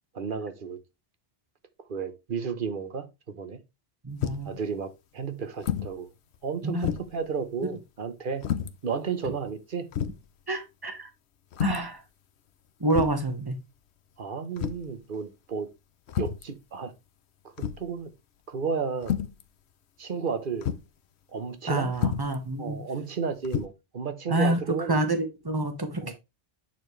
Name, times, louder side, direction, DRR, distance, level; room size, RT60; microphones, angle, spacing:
voice 1, 0.1-0.8 1.9-3.6 4.4-6.1 6.4-8.4 8.8-9.9 14.2-15.7 16.2-16.9 17.6-18.1 18.5-19.1 20.0-20.7 21.3-21.9 22.6-25.0 26.0-26.1, right 5 dB, 55° right, 1.1 m, -32 dB
voice 2, 4.0-4.5 6.6-7.0 7.7-7.8 10.5-11.1 11.6-12.0 12.8-13.6 21.7-22.8 24.3-24.6 24.9-26.1, right 2 dB, 20° right, 1.4 m, -28 dB
sound 1, 4.2-4.6 5.6-6.0 6.3-6.4 6.8-7.2 8.4-8.7 9.5-9.6 9.9-10.2 11.5-11.9 12.9-13.3 14.6-14.9 16.1-16.5 17.6-17.9 19.0-19.4 20.6-20.9 21.9-22.4 23.4-23.6, left 9 dB, 85° left, 1.0 m, -30 dB
9.5 x 4.4 x 3.2 m
omnidirectional pair, 1.1 m